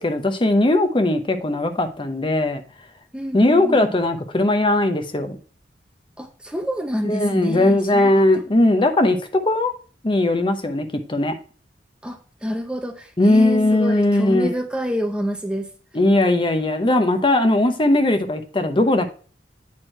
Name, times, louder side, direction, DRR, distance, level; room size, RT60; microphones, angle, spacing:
voice 1, 0.0-2.6 3.3-5.4 7.0-9.7 10.0-11.3 13.2-14.5 15.9-19.1, left 1 dB, 30° left, 0.8 m, -19 dB
voice 2, 3.1-4.0 6.2-8.1 12.0-15.7, equal, 5° right, 0.7 m, -27 dB
8.4 x 4.5 x 4.4 m
head